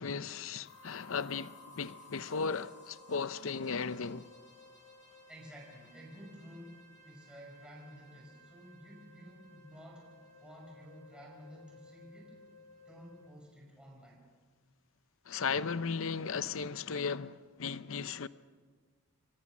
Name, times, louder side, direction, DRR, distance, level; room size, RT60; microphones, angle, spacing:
voice 1, 0.0-4.3 15.3-18.3, left 5 dB, 65° left, 0.7 m, -36 dB
sound 1, 0.6-13.3, left 2 dB, 50° left, 7.7 m, -57 dB
voice 2, 5.3-12.4 12.9-14.2, equal, 5° right, 5.5 m, -52 dB
28.0 x 24.0 x 6.2 m
head